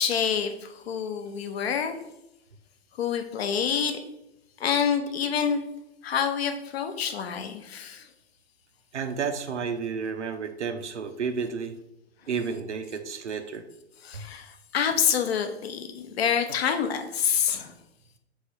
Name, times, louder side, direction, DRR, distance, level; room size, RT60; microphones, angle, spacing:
voice 1, 0.0-2.0 3.0-4.0 4.6-5.6 6.0-8.1 14.0-17.7, left 7 dB, 65° left, 7 dB, 0.7 m, -27 dB
voice 2, 8.9-11.7 12.3-13.7 14.1-14.2, right 6 dB, 85° right, 9 dB, 0.6 m, -31 dB
3.7 x 3.2 x 4.2 m, 0.86 s
figure-of-eight pair, 105°, 34 cm